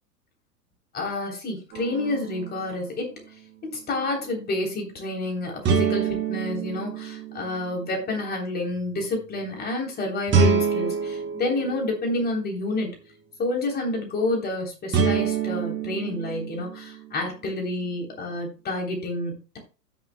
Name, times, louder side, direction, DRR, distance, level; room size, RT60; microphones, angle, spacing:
voice 1, 0.9-3.2 3.6-12.9 13.4-19.6, left 2 dB, 20° left, 1 dB, 3.4 m, -29 dB
sound 1, 1.7-2.7 5.7-7.8 10.3-12.5 14.9-17.1, right 5 dB, 25° right, 2.0 m, -26 dB
15.5 x 6.9 x 2.2 m, 0.32 s
figure-of-eight pair, 105°, 49 cm